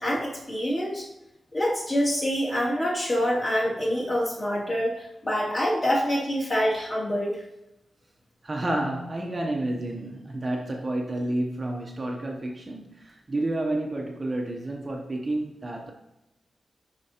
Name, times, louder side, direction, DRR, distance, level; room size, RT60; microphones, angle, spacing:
voice 1, 0.0-1.0 1.5-7.4, equal, 25° left, -6 dB, 2.2 m, -26 dB
voice 2, 8.4-15.9, right 1 dB, 30° right, 1 dB, 0.7 m, -30 dB
10.5 x 4.3 x 2.8 m, 0.93 s
wide cardioid pair, 145°, 0 cm